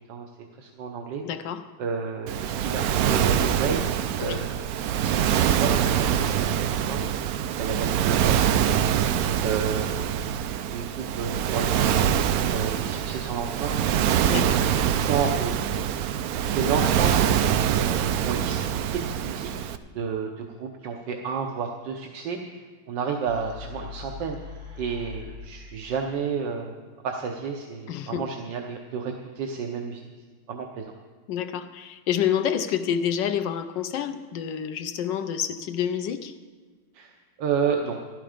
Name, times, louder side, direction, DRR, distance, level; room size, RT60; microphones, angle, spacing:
voice 1, 0.6-1.2 1.8-3.8 4.2-4.6 5.0-7.0 7.6-9.0 9.4-10.1 10.7-12.1 12.5-13.8 14.3-14.4 15.0-15.7 16.5-17.3 17.7-19.7 19.9-22.4 22.9-24.4 24.8-26.8 27.0-30.1 30.5-30.9 36.9-37.1 37.4-38.0, right 6 dB, 85° right, 2 dB, 1.6 m, -31 dB
voice 2, 1.2-1.6 4.2-4.5 14.3-14.7 27.9-28.3 31.3-36.3, left 9 dB, 85° left, 9 dB, 1.4 m, -28 dB
Waves surf, 2.3-19.8, right 9 dB, 70° right, 0.9 m, -24 dB
sound 1, 23.3-26.0, left 5 dB, 40° right, 1.6 m, -41 dB
14.0 x 12.0 x 5.1 m, 1.5 s
omnidirectional pair, 1.9 m